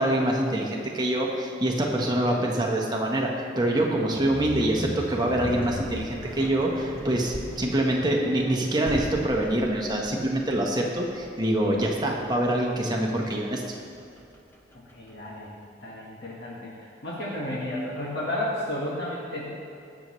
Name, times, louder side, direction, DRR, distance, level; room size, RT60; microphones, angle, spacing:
voice 1, 0.0-13.6, right 1 dB, 25° right, -1 dB, 1.2 m, -25 dB
sound 1, 4.1-15.3, left 1 dB, 10° left, 0.8 m, -38 dB
voice 2, 14.9-15.5 15.8-19.5, left 1 dB, 65° left, -6 dB, 1.7 m, -32 dB
19.5 x 6.8 x 3.2 m, 2.6 s
head